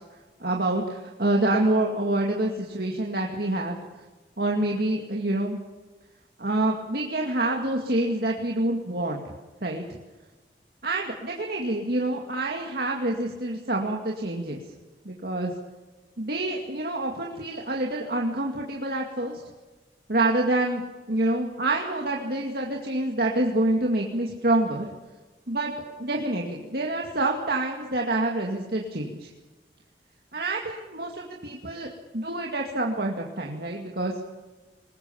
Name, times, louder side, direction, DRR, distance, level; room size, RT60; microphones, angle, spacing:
voice 1, 0.4-3.8 4.4-5.6 6.4-9.3 9.6-10.0 10.8-14.6 15.1-15.5 16.2-19.4 20.1-20.8 21.1-24.9 25.5-25.7 26.0-29.3 30.3-34.1, right 2 dB, 60° right, 0 dB, 2.2 m, -27 dB
21.5 x 20.0 x 7.2 m, 1.2 s
head